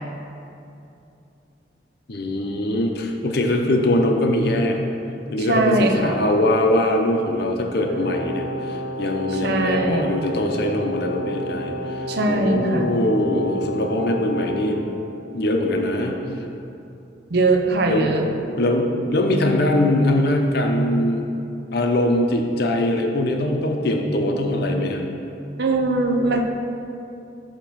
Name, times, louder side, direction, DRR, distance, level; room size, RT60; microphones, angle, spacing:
voice 1, 2.1-4.8 5.3-14.8 15.3-16.1 17.9-18.1 18.6-21.3 21.7-25.1, left 1 dB, 60° left, 3 dB, 0.6 m, -22 dB
voice 2, 5.4-6.2 9.3-10.2 12.1-12.9 17.3-18.2 25.6-26.4, right 2 dB, 60° right, 3 dB, 0.6 m, -21 dB
Brass instrument, 7.8-14.7, left 1 dB, 85° right, 0.9 m, -31 dB
8.4 x 2.9 x 5.8 m, 2.7 s
head